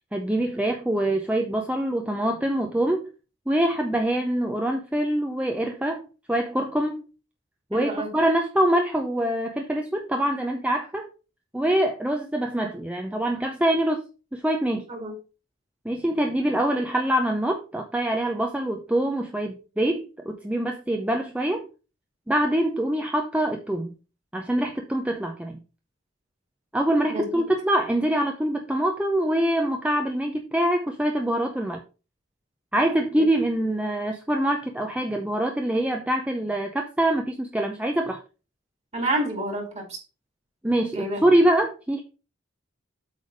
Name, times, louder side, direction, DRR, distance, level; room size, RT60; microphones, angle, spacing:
voice 1, 0.1-3.1 3.5-7.1 7.7-11.1 11.5-14.0 14.3-14.9 15.8-21.7 22.3-23.9 24.3-25.6 26.7-31.8 32.7-38.2 40.6-42.0, right 1 dB, 5° right, 0.6 m, -24 dB
voice 2, 7.7-8.1 14.9-15.2 27.1-27.4 33.2-33.3 38.9-40.0 40.9-41.2, right 1 dB, 35° right, 2.5 m, -29 dB
8.1 x 3.4 x 5.3 m
head